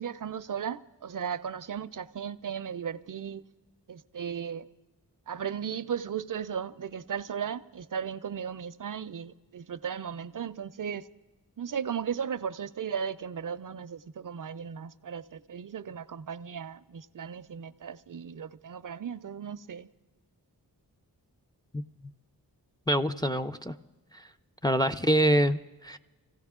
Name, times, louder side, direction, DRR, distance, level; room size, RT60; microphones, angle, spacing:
voice 1, 0.0-3.4 3.9-4.6 5.3-11.1 11.6-19.9, right 7 dB, 55° right, 0.5 m, -36 dB
voice 2, 22.9-23.8 24.1-24.2 24.6-26.0, right 1 dB, 10° left, 0.4 m, -25 dB
24.5 x 16.0 x 3.6 m
wide cardioid pair, 100°, 38 cm